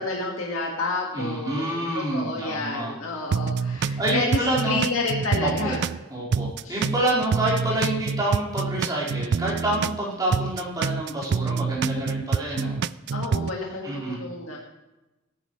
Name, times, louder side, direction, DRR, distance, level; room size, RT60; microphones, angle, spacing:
voice 1, 0.0-5.8 6.6-6.8 13.1-14.6, left 3 dB, 85° left, -1 dB, 1.7 m, -30 dB
voice 2, 1.1-2.9 4.0-4.8 5.4-5.8 6.1-12.8 13.8-14.2, right 1 dB, 20° right, -7 dB, 4.6 m, -27 dB
sound 1, 3.3-6.0 6.3-10.0 10.3-13.5, right 5 dB, 55° right, 0.3 m, -26 dB
18.0 x 10.5 x 3.2 m, 1.0 s
head